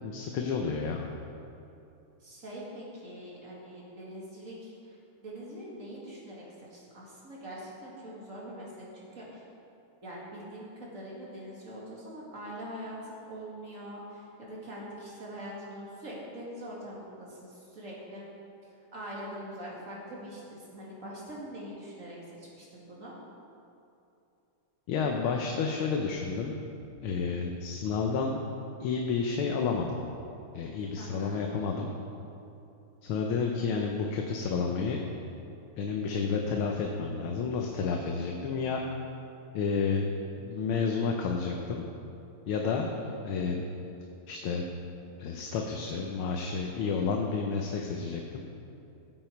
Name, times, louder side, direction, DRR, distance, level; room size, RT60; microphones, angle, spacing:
voice 1, 0.0-1.1 24.9-26.5 27.0-28.4 28.8-30.0 30.5-31.9 33.0-35.0 35.8-38.8 39.5-40.0 40.4-41.8 42.5-42.9 43.2-43.6 44.3-44.6 45.2-48.4, left 5 dB, 75° left, 1 dB, 1.6 m, -30 dB
voice 2, 2.2-5.0 5.2-6.4 6.7-9.5 10.0-18.2 18.9-23.2 31.0-31.5 42.7-43.2, equal, 35° right, -5 dB, 2.5 m, -43 dB
15.5 x 7.8 x 4.6 m, 2.7 s
omnidirectional pair, 2.4 m